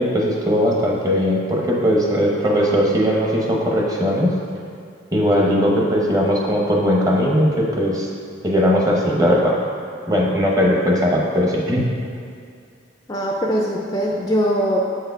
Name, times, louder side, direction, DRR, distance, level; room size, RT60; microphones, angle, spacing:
voice 1, 0.0-4.3 5.1-8.1 8.4-9.6 10.1-11.9, equal, 20° right, -2 dB, 0.8 m, -19 dB
voice 2, 13.1-14.8, equal, 20° left, -1 dB, 0.4 m, -21 dB
7.1 x 4.8 x 4.6 m, 2.4 s
head